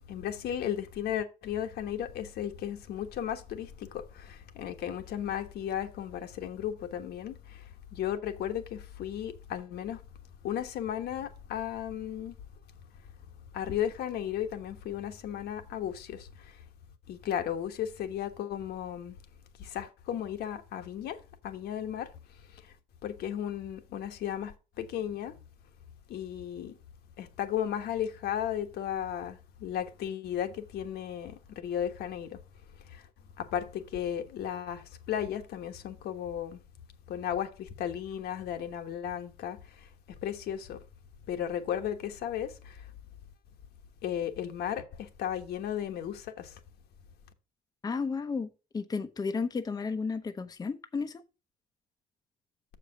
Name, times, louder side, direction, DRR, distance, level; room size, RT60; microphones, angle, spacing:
voice 1, 0.1-10.0 10.4-12.4 13.5-16.6 17.1-19.2 19.6-22.1 22.5-22.7 23.0-25.4 26.1-26.8 27.2-32.4 32.9-33.1 33.4-36.6 37.1-39.9 40.2-40.8 41.3-42.9 44.0-46.5, left 10 dB, 70° left, 1.3 m, -35 dB
voice 2, 47.8-48.5 48.7-51.2, left 4 dB, 20° left, 0.7 m, -33 dB
6.9 x 5.0 x 6.3 m
cardioid pair, 110°, 17 cm